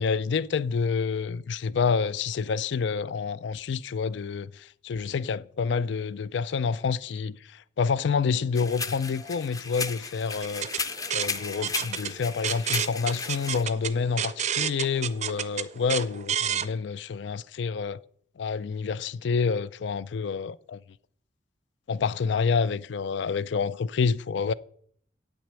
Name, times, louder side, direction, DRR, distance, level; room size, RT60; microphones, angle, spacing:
voice 1, 0.0-10.7 11.1-18.0 18.4-20.8 21.9-24.5, left 5 dB, 70° left, 0.4 m, -28 dB
sound 1, 8.5-13.6, left 4 dB, 20° left, 0.6 m, -35 dB
sound 2, 10.4-16.7, right 8 dB, 40° right, 0.6 m, -30 dB
8.8 x 6.2 x 8.2 m
head